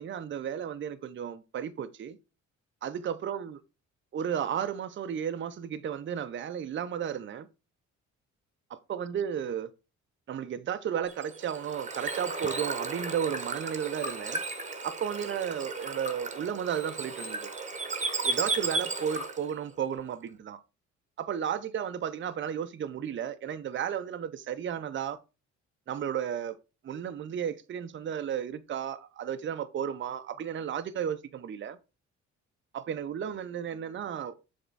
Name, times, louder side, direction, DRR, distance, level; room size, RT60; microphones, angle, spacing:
voice 1, 0.0-2.2 2.8-3.6 4.1-7.5 8.7-9.7 10.3-14.4 14.8-17.5 18.2-20.6 21.2-25.2 25.9-26.6 26.8-31.8 32.7-34.4, right 8 dB, 40° right, 0.6 m, -33 dB
Bird / Water, 11.1-19.5, right 3 dB, 25° right, 1.1 m, -34 dB
6.9 x 3.5 x 4.0 m
cardioid pair, 90°, 30 cm